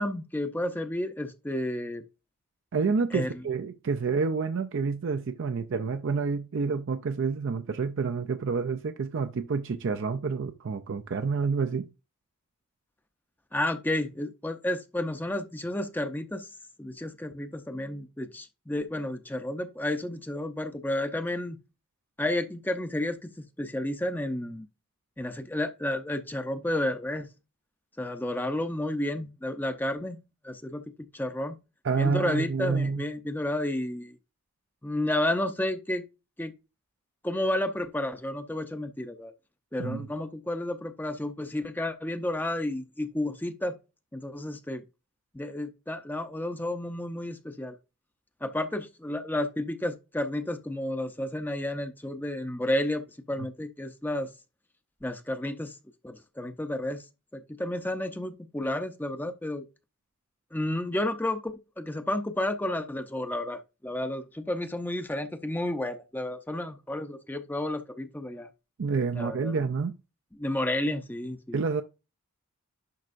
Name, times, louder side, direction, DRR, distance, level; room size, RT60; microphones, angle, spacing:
voice 1, 0.0-2.0 3.1-3.3 13.5-16.5 16.8-21.6 22.2-24.7 25.2-27.3 28.0-30.2 30.4-30.8 31.1-31.6 32.0-34.1 34.8-36.0 36.4-36.5 37.2-39.3 39.7-43.8 44.1-44.8 45.3-47.8 48.4-54.3 55.0-55.8 56.0-57.0 57.3-59.6 60.5-68.5 69.1-69.6 70.4-71.6, left 1 dB, 10° left, 0.5 m, -31 dB
voice 2, 2.7-11.9 31.8-33.0 39.8-40.1 68.8-69.9 71.5-71.8, right 5 dB, 55° right, 0.4 m, -28 dB
10.5 x 6.0 x 2.5 m
head